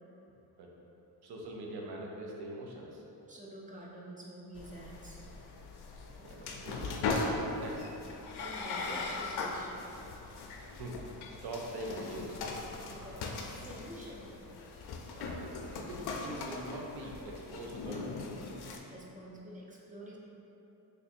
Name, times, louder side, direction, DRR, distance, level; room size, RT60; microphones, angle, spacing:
voice 1, 1.2-3.0 6.2-7.9 10.6-12.6 15.1-15.5 15.9-18.2, right 1 dB, 75° right, -1 dB, 0.7 m, -43 dB
voice 2, 3.3-5.6 8.4-9.8 12.9-14.4 18.9-20.2, right 1 dB, 20° right, -4 dB, 0.6 m, -48 dB
sound 1, 4.6-18.8, left 3 dB, 75° left, 0.5 m, -39 dB
3.3 x 2.6 x 4.3 m, 3.0 s
cardioid pair, 100°, 39 cm